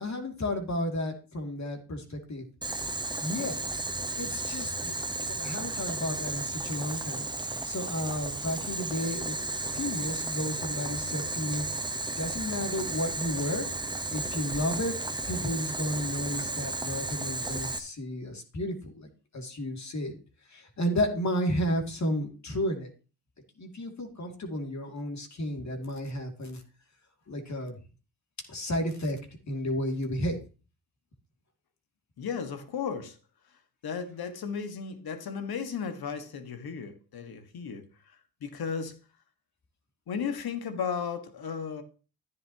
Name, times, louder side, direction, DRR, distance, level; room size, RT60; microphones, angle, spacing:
voice 1, 0.0-2.4 3.2-3.6 4.2-5.0 5.2-9.4 9.7-11.7 12.2-13.7 14.1-14.9 15.3-20.2 20.5-22.9 23.6-26.6 27.3-27.8 28.5-29.2 29.5-30.4, left 1 dB, 45° left, 2.7 m, -32 dB
Boiling, 2.6-17.8, right 2 dB, 10° right, 1.1 m, -34 dB
voice 2, 32.2-33.2 33.8-37.9 38.4-39.0 40.1-41.8, left 6 dB, 65° left, 1.8 m, -34 dB
11.5 x 9.8 x 3.0 m
cardioid pair, 65°, 40 cm